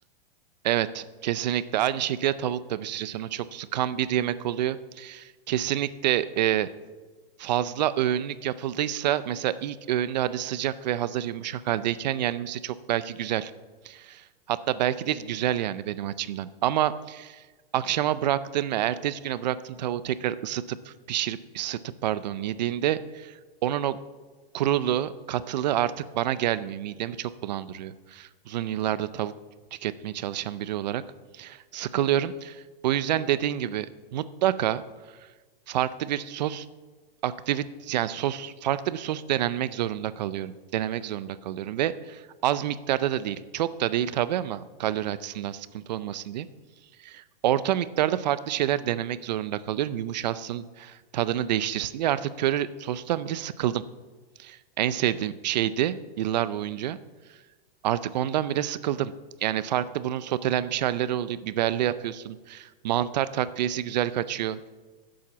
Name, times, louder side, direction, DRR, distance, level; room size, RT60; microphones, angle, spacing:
voice 1, 0.6-6.7 7.4-13.5 13.8-17.4 17.7-24.0 24.5-29.3 29.8-31.0 31.3-33.9 34.1-34.8 35.7-36.7 37.2-46.5 47.0-53.8 54.4-57.0 57.8-59.1 59.4-64.7, right 12 dB, 45° right, 15 dB, 0.5 m, -28 dB
11.0 x 7.7 x 6.0 m, 1.3 s
supercardioid pair, 165°, 30 cm